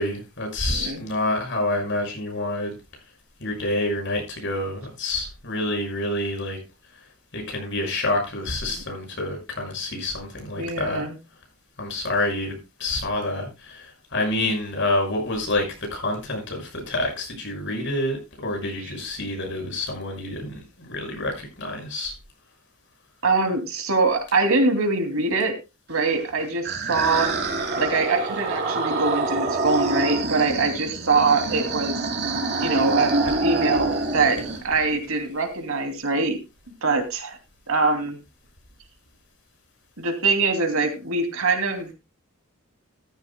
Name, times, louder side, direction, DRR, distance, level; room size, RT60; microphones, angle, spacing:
voice 1, 0.0-2.7 3.4-6.6 6.9-11.1 11.8-22.1, left 1 dB, 55° left, 2 dB, 5.9 m, -28 dB
voice 2, 10.6-11.1 23.2-25.6 25.9-27.3 27.8-32.0 32.6-36.4 36.8-37.4 37.7-38.2 40.0-41.9, right 3 dB, 65° right, 5 dB, 2.7 m, -23 dB
sound 1, 26.1-34.6, right 3 dB, 50° right, 3.3 m, -26 dB
14.5 x 14.0 x 2.2 m, 0.27 s
head